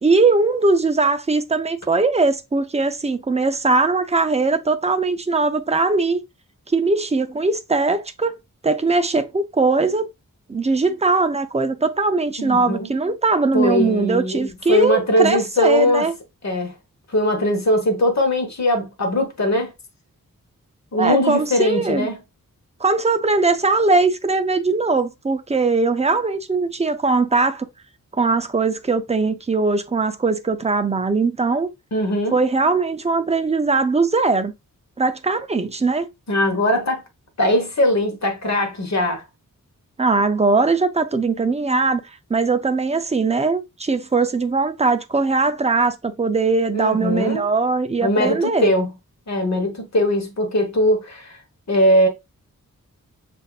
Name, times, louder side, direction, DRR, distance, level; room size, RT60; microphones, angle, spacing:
voice 1, 0.0-6.2 6.7-8.3 8.6-10.1 10.5-16.1 21.0-22.1 22.8-27.7 28.1-31.7 32.3-34.5 35.0-36.1 40.0-42.0 42.3-48.7, right 3 dB, 20° right, 0.5 m, -20 dB
voice 2, 12.4-12.9 13.5-16.1 16.4-16.7 17.1-19.7 20.9-22.2 31.9-32.4 36.3-37.0 37.4-39.2 46.7-47.4 48.0-48.9 49.3-51.4 51.7-52.1, left 1 dB, 50° left, 1.3 m, -20 dB
6.6 x 2.6 x 2.3 m
wide cardioid pair, 105°, 34 cm